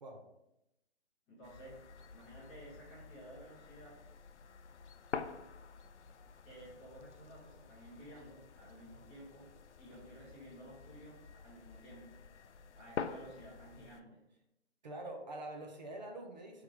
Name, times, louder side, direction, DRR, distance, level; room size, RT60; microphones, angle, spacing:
voice 1, 1.3-1.8 2.1-4.0 6.4-9.5 9.8-12.2 12.7-14.2, right 1 dB, 10° left, -10 dB, 0.7 m, -54 dB
sound 1, 1.4-14.0, left 6 dB, 80° left, 0.5 m, -48 dB
voice 2, 14.8-16.6, right 1 dB, 40° right, 2 dB, 0.6 m, -45 dB
4.5 x 3.1 x 3.7 m, 0.86 s
hypercardioid pair, 155°, 34 cm